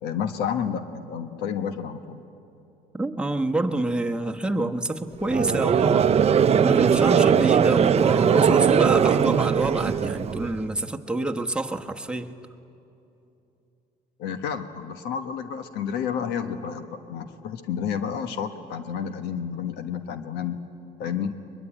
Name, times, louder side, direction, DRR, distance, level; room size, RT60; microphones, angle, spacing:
voice 1, 0.0-2.2 14.2-20.6 21.0-21.3, left 7 dB, 85° left, 8 dB, 1.2 m, -30 dB
voice 2, 2.9-6.1 6.6-12.3, right 2 dB, 5° right, 3 dB, 1.2 m, -27 dB
Conversation / Crowd, 5.3-10.6, right 8 dB, 40° right, 0.7 m, -20 dB
22.0 x 22.0 x 10.0 m, 2.8 s
cardioid pair, 110°, 17 cm